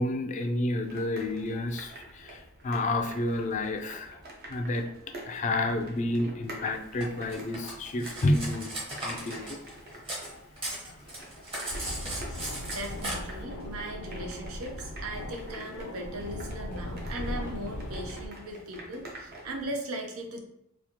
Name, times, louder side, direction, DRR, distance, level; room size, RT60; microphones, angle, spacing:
voice 1, 0.0-4.2 4.5-8.7 9.0-9.6 10.3-10.5 10.8-10.9, left 2 dB, 35° left, 4 dB, 0.4 m, -30 dB
sound 1, 0.8-19.7, right 1 dB, 45° right, 0.7 m, -47 dB
Cutlery silverware, 7.0-10.3 10.6-13.1, right 1 dB, 25° right, 1.1 m, -37 dB
sound 2, 11.7-18.3, left 1 dB, 90° left, 0.5 m, -38 dB
voice 2, 12.6-20.4, right 1 dB, 80° right, 2 dB, 0.7 m, -38 dB
4.1 x 2.3 x 2.9 m, 0.81 s
head